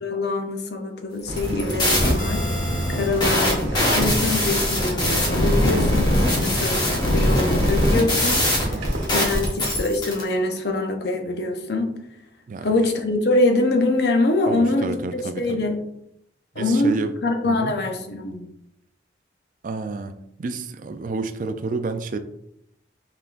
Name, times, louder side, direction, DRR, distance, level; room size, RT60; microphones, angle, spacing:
voice 1, 0.0-2.4 2.9-8.7 9.1-11.9 12.6-15.8 16.6-17.0 17.2-18.4, left 2 dB, 60° left, 0.7 m, -24 dB
sound 1, 1.3-10.2, left 1 dB, 25° left, 1.1 m, -22 dB
sound 2, 1.3-9.1, equal, 85° right, 1.2 m, -30 dB
voice 2, 6.4-6.7 8.7-9.1 12.5-12.7 14.5-15.7 16.6-17.1 17.4-17.7 19.6-20.1 20.4-22.2, right 3 dB, 45° right, 0.3 m, -30 dB
5.6 x 3.5 x 2.5 m
head